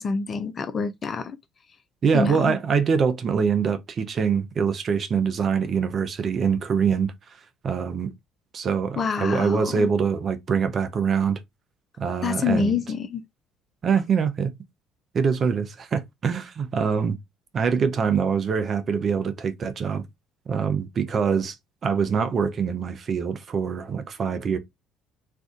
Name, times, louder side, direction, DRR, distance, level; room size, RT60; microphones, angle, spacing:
voice 1, 0.0-1.4 2.1-2.5 9.0-9.9 12.2-13.2, left 5 dB, 40° left, 0.5 m, -26 dB
voice 2, 2.0-7.1 7.6-8.1 8.5-11.4 12.0-12.8 13.8-14.5 15.1-17.2 17.5-20.0 20.5-21.6 21.8-24.6, right 6 dB, 45° right, 0.6 m, -24 dB
2.6 x 2.4 x 3.6 m
hypercardioid pair, 60°, 0 cm